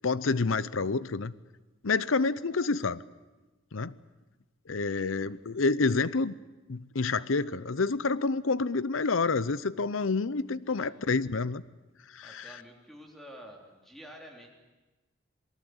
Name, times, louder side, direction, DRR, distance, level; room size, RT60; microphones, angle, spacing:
voice 1, 0.0-1.3 1.8-3.0 3.7-4.0 4.7-6.3 6.7-11.6 12.1-12.5, left 4 dB, 85° left, 18 dB, 0.8 m, -28 dB
voice 2, 4.8-5.1 10.6-10.9 12.2-14.5, equal, ahead, 1 dB, 3.7 m, -50 dB
27.5 x 19.5 x 8.0 m, 1.1 s
head